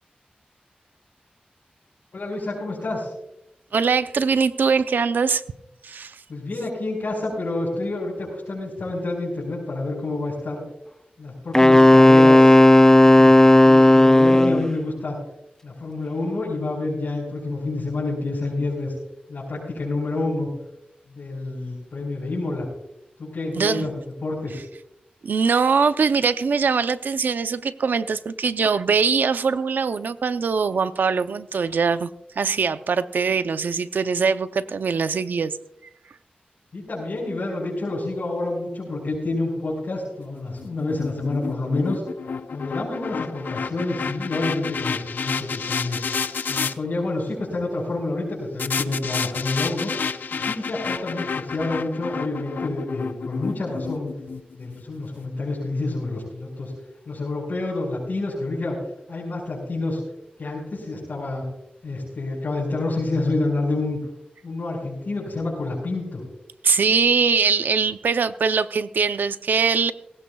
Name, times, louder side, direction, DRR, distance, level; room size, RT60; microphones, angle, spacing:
voice 1, 2.1-3.1 6.3-10.6 11.2-15.2 15.6-18.9 19.3-20.5 21.1-22.7 23.2-23.9 24.2-24.6 36.7-42.0 42.5-46.0 46.5-49.9 50.3-54.1 54.5-56.7 57.0-58.8 59.1-60.0 60.4-61.5 61.8-64.0 64.4-66.2, left 2 dB, 70° left, -5 dB, 4.8 m, -28 dB
voice 2, 3.7-5.4 5.8-6.2 23.5-23.9 25.2-32.1 32.4-35.6 66.6-69.9, right 5 dB, 90° right, 12 dB, 0.6 m, -22 dB
Wind instrument woodwind instrument, 11.5-14.7, left 1 dB, 15° left, 0.5 m, -12 dB
sound 1, 40.5-46.7 48.6-54.8, left 5 dB, 90° left, 0.5 m, -30 dB
19.0 x 16.5 x 2.3 m, 0.84 s
cardioid pair, 60°, 3 cm